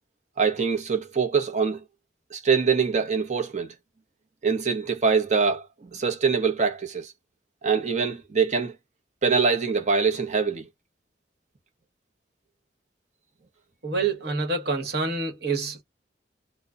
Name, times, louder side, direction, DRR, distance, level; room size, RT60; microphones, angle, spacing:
voice 1, 0.4-1.8 2.3-3.7 4.4-7.1 7.6-8.7 9.2-10.7, right 5 dB, 40° right, 0.7 m, -24 dB
voice 2, 13.8-15.8, right 4 dB, 65° right, 1.1 m, -27 dB
2.2 x 2.1 x 3.6 m
head